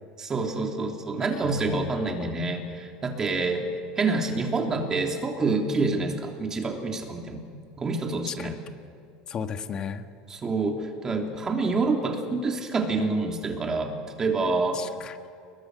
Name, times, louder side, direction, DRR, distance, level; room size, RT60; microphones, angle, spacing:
voice 1, 0.2-3.7 4.0-7.4 7.8-8.6 10.3-14.8, right 3 dB, 20° right, 2 dB, 3.3 m, -27 dB
voice 2, 1.4-2.3 8.3-8.6 9.3-10.1 14.7-15.2, left 7 dB, 30° left, 8 dB, 1.5 m, -35 dB
29.5 x 22.5 x 6.7 m, 2.3 s
cardioid pair, 150°, 3 cm